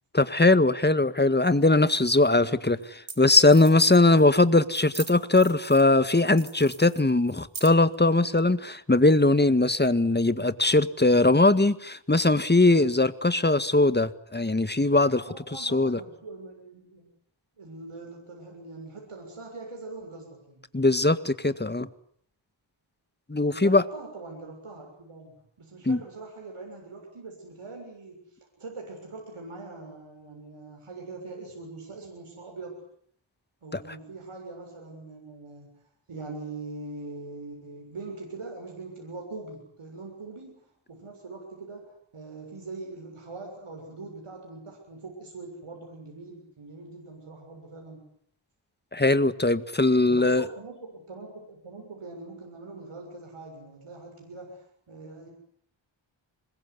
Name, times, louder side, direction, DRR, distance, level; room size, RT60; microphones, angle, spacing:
voice 1, 0.1-16.0 20.7-21.9 23.3-23.8 25.9-26.0 33.7-33.8 48.9-50.5, left 2 dB, 20° left, 1.8 m, -21 dB
sound 1, 2.0-2.1 2.8-2.9 3.1-3.2 3.4-4.2 4.7-5.9 6.3-7.9, right 4 dB, 70° right, 4.2 m, -42 dB
voice 2, 15.3-17.1 17.6-20.7 23.5-32.8 33.6-35.7 36.1-48.0 50.1-55.3, right 3 dB, 90° right, 7.0 m, -42 dB
26.5 x 22.0 x 9.7 m
cardioid pair, 50°, 49 cm